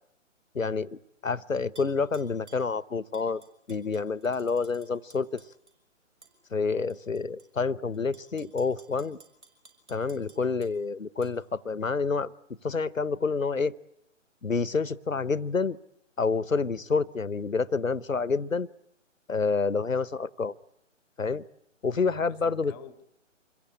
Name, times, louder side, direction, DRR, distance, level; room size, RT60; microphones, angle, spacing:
voice 1, 0.5-3.4 3.7-5.4 6.5-9.2 9.9-12.3 12.6-13.7 14.4-15.8 16.2-18.7 19.3-20.5 21.2-21.4 21.8-22.7, left 4 dB, 85° left, 19 dB, 1.0 m, -28 dB
Tap / Glass, 1.8-2.7 3.1-5.7 6.2-6.3 6.9-7.5 7.9-10.7 11.2-11.3, right 3 dB, 60° right, 6.5 m, -55 dB
voice 2, 22.0-23.0, left 10 dB, 15° left, 15 dB, 1.0 m, -50 dB
27.0 x 22.0 x 8.7 m, 0.78 s
figure-of-eight pair, 135°, 38 cm